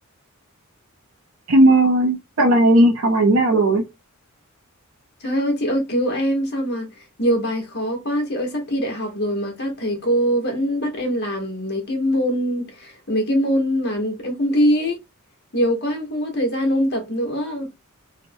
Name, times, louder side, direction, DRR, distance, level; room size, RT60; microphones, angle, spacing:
voice 1, 1.5-3.8, right 1 dB, 65° right, 0.7 m, -16 dB
voice 2, 5.2-15.0 15.5-17.7, equal, 50° left, 1.1 m, -23 dB
3.0 x 2.1 x 2.6 m
head